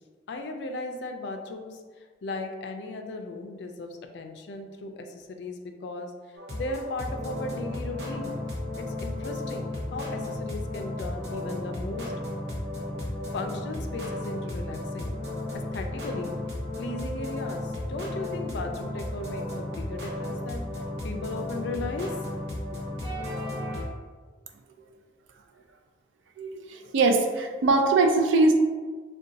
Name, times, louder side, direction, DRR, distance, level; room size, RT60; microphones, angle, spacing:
voice 1, 0.3-6.1 6.5-8.3 8.8-12.1 13.3-15.1 15.5-16.3 16.8-20.7 21.0-22.1 22.5-22.6, left 2 dB, 70° left, 4 dB, 0.3 m, -36 dB
sound 1, 6.3-23.8, left 1 dB, 65° right, 0.9 m, -34 dB
voice 2, 26.4-28.6, right 3 dB, 90° right, 4 dB, 0.4 m, -22 dB
2.6 x 2.2 x 3.9 m, 1.5 s
head